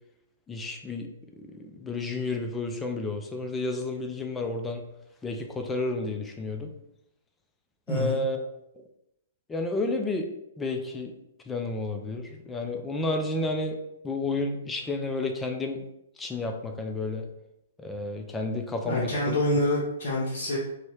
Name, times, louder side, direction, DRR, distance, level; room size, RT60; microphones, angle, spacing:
voice 1, 0.5-1.1 1.5-4.8 5.2-6.7 7.9-8.4 9.5-10.3 10.6-11.1 11.5-13.8 14.0-15.8 16.2-17.3 17.8-19.4, left 2 dB, 10° left, 3 dB, 0.3 m, -31 dB
voice 2, 7.9-8.2 18.9-20.6, left 1 dB, 45° left, -6 dB, 0.7 m, -26 dB
2.6 x 2.1 x 3.1 m, 0.83 s
figure-of-eight pair, 115°, 0 cm